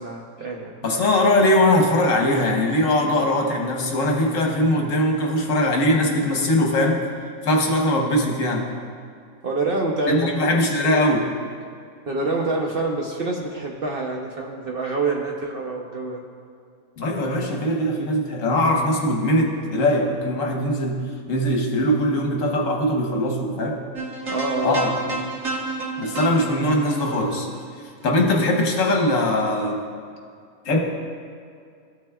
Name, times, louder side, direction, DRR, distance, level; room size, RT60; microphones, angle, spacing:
voice 1, 0.0-0.7 9.4-10.6 12.1-16.2 24.3-24.9, right 2 dB, 50° right, 0 dB, 0.8 m, -26 dB
voice 2, 0.8-7.0 7.4-8.7 10.1-11.3 17.0-21.0 21.3-23.8 24.6-24.9 26.0-27.5 28.0-29.9 30.6-30.8, left 1 dB, 70° left, 1 dB, 1.3 m, -21 dB
sound 1, 24.0-28.3, right 3 dB, 70° right, 1.6 m, -31 dB
14.0 x 5.9 x 2.3 m, 2.3 s
omnidirectional pair, 1.5 m